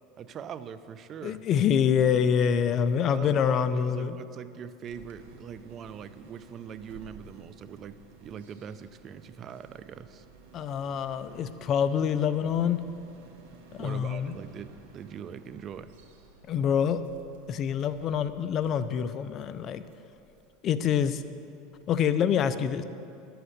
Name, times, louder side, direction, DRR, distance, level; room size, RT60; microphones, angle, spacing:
voice 1, 0.2-1.4 3.1-10.3 13.8-15.9, right 7 dB, 35° right, 13 dB, 0.5 m, -42 dB
voice 2, 1.2-4.2 10.5-12.8 13.7-14.4 16.5-17.0 17.5-19.8 20.6-21.2 21.9-22.8, left 8 dB, 40° left, 12 dB, 0.5 m, -26 dB
sound 1, 4.8-22.1, right 4 dB, 80° right, 1.6 m, -54 dB
11.0 x 7.9 x 6.6 m, 2.6 s
supercardioid pair, 130°, 0 cm